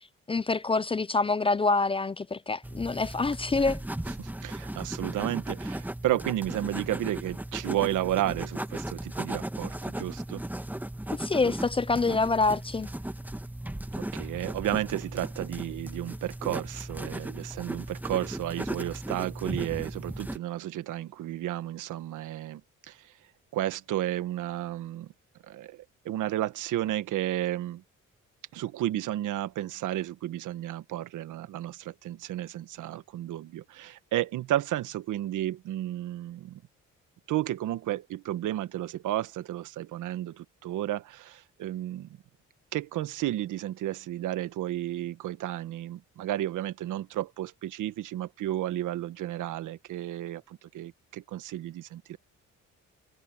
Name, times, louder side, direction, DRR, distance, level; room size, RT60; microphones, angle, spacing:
voice 1, 0.3-3.8 11.1-12.9, left 3 dB, 20° left, 0.4 m, -26 dB
sound 1, 2.6-20.4, right 1 dB, 5° right, 1.5 m, -36 dB
voice 2, 4.2-10.4 14.0-23.1 23.5-25.1 25.4-27.8 28.5-36.6 37.3-42.1 42.7-52.2, right 13 dB, 85° right, 1.4 m, -32 dB
cardioid pair, 90°, 30 cm